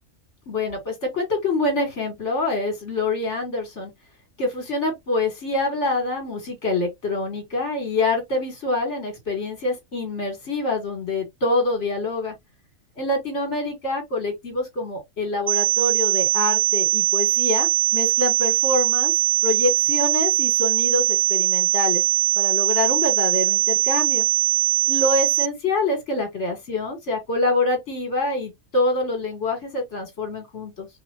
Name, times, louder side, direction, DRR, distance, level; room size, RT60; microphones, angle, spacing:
voice 1, 0.5-3.9 4.4-12.3 13.0-19.1 19.4-22.0 22.4-24.3 24.9-30.9, left 2 dB, 55° left, 2.2 m, -26 dB
sound 1, 15.5-25.5, right 16 dB, 50° right, 0.6 m, -21 dB
4.9 x 2.6 x 3.0 m
omnidirectional pair, 1.4 m